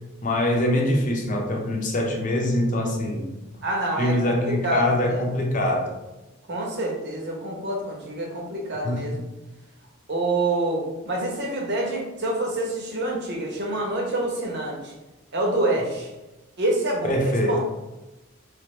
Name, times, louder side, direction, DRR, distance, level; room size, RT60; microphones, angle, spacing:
voice 1, 0.2-3.3 4.0-5.9 8.8-9.1 17.0-17.6, left 1 dB, 40° left, 1 dB, 0.7 m, -23 dB
voice 2, 3.6-4.3 4.6-5.0 6.5-9.2 10.1-14.9 15.3-16.1 16.6-17.1 17.5-17.6, right 2 dB, 55° right, -1 dB, 1.0 m, -26 dB
3.4 x 3.2 x 3.2 m, 1.0 s
head